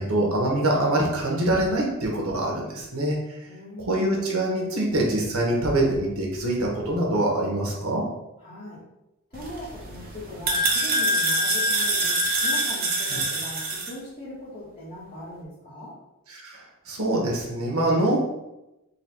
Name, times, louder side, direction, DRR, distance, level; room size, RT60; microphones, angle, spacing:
voice 1, 0.0-3.4 3.8-8.0 13.1-13.2 16.3-18.2, right 1 dB, 75° right, -1 dB, 1.2 m, -24 dB
voice 2, 3.5-4.3 8.4-8.8 9.3-12.2 12.4-15.9, left 1 dB, 35° left, -9 dB, 1.0 m, -40 dB
sound 1, 9.3-13.9, right 1 dB, 45° right, 0.7 m, -25 dB
4.1 x 2.3 x 4.4 m, 0.94 s
head